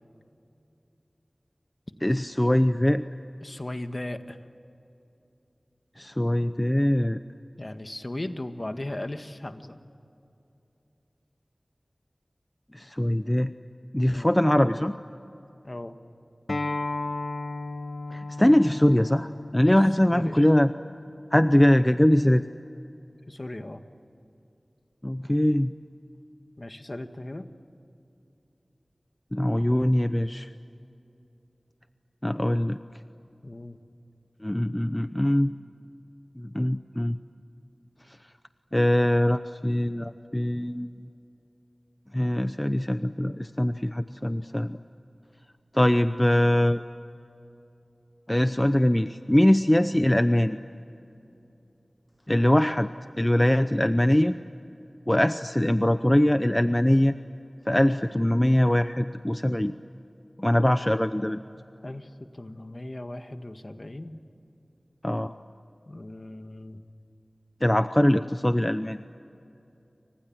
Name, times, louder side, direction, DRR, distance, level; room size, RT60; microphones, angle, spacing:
voice 1, 2.0-3.0 6.0-7.2 12.7-13.5 13.9-14.9 18.1-20.7 21.3-22.4 25.0-25.7 29.3-30.5 32.2-32.8 34.4-35.5 36.4-37.2 38.7-40.9 42.1-44.8 45.7-46.8 48.3-50.6 52.3-52.9 53.2-54.3 55.1-57.2 57.7-59.7 60.4-61.4 65.0-65.3 67.6-69.0, left 1 dB, 20° left, 10 dB, 0.7 m, -22 dB
voice 2, 3.4-4.4 7.6-9.8 14.0-14.3 15.6-16.0 19.7-19.8 20.1-20.4 23.3-23.8 26.6-27.5 33.4-33.8 61.8-64.2 65.9-66.8, left 1 dB, 45° left, 7 dB, 1.7 m, -37 dB
Acoustic guitar, 16.5-21.7, left 2 dB, 65° left, 1.4 m, -35 dB
29.5 x 25.0 x 7.4 m, 2.8 s
wide cardioid pair, 50°, 0 cm